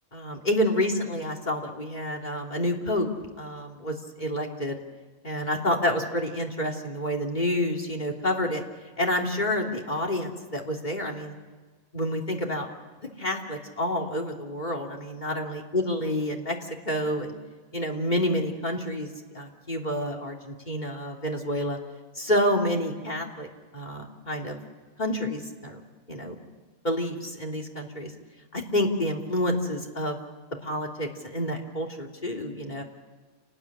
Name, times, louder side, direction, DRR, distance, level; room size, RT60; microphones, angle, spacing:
voice 1, 0.1-3.1 3.4-4.8 5.2-8.6 9.0-11.3 11.9-12.7 13.2-16.6 16.9-17.3 17.7-21.8 22.1-23.5 23.7-24.6 25.0-25.8 26.1-26.3 26.8-28.1 28.5-30.2 30.6-32.8, left 1 dB, 35° left, 0 dB, 3.3 m, -28 dB
29.0 x 20.0 x 10.0 m, 1.4 s
omnidirectional pair, 1.3 m